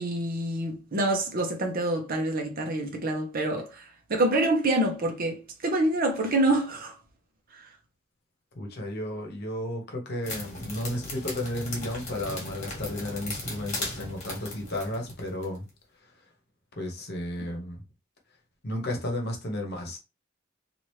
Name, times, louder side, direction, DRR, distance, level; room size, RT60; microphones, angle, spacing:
voice 1, 0.0-6.9 7.5-7.7, right 1 dB, 50° right, 0.7 m, -27 dB
voice 2, 8.5-15.7 16.0-16.3 16.8-17.8 18.6-20.0, left 1 dB, 55° left, 1.0 m, -33 dB
sound 1, 10.2-15.6, left 2 dB, 35° left, 1.3 m, -37 dB
2.9 x 2.5 x 3.1 m
head